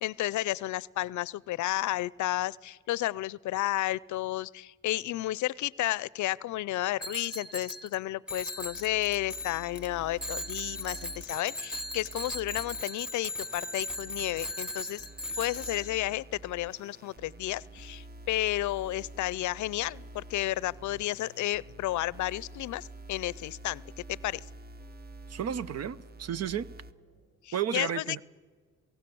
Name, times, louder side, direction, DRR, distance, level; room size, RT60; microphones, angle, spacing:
voice 1, 0.0-15.0 15.4-23.8 24.1-24.4 27.4-28.2, left 15 dB, 75° left, 0.5 m, -32 dB
Bicycle bell, 7.0-8.0 8.3-9.9 10.2-16.1, left 1 dB, 5° right, 1.2 m, -38 dB
sound 1, 8.6-12.8 13.4-26.9, right 2 dB, 30° right, 1.1 m, -48 dB
sound 2, 13.1-27.4, right 1 dB, 80° right, 7.3 m, -68 dB
voice 2, 25.3-26.7 27.5-28.2, right 9 dB, 55° right, 0.8 m, -32 dB
28.0 x 18.0 x 7.0 m
cardioid pair, 90°, 30 cm